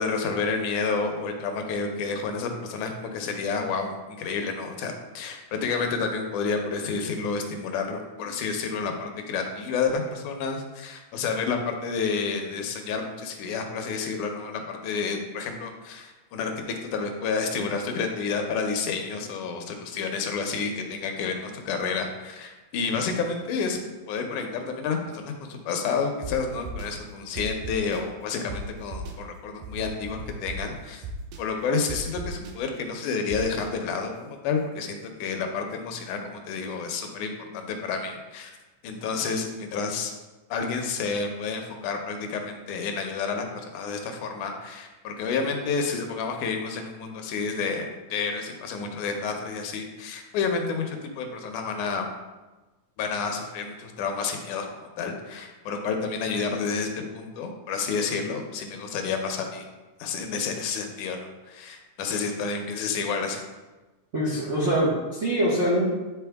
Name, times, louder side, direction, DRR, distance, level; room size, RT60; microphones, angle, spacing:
voice 1, 0.0-23.8 24.1-31.0 31.4-38.6 38.8-40.1 40.5-52.1 53.0-54.7 55.0-59.7 60.0-63.4, left 5 dB, 80° left, 4 dB, 2.2 m, -30 dB
sound 1, 26.2-26.3 26.6-26.9 27.4-28.0 28.5-28.6 28.9-29.1 29.6-30.6 31.0-31.4 31.9-32.5 33.3-33.6, right 5 dB, 90° right, 2.4 m, -36 dB
voice 2, 64.1-66.0, right 1 dB, 75° right, -7 dB, 0.6 m, -24 dB
9.9 x 4.1 x 3.4 m, 1.2 s
omnidirectional pair, 3.6 m